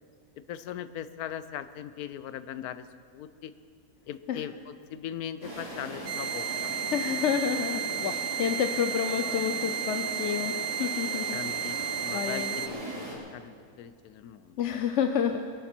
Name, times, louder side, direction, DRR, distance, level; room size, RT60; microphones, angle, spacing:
voice 1, 0.5-2.8 3.1-3.5 4.1-6.5 8.0-8.2 9.2-9.3 11.3-14.6, left 10 dB, 80° left, 12 dB, 1.2 m, -39 dB
sound 1, 5.4-13.2, right 1 dB, 25° right, 3.1 m, -39 dB
sound 2, 6.1-12.7, right 9 dB, 50° right, 0.5 m, -33 dB
voice 2, 6.9-7.8 8.4-11.4 12.1-12.6 14.6-15.4, left 8 dB, 60° left, 6 dB, 0.9 m, -29 dB
22.0 x 11.0 x 4.4 m, 2.1 s
omnidirectional pair, 1.6 m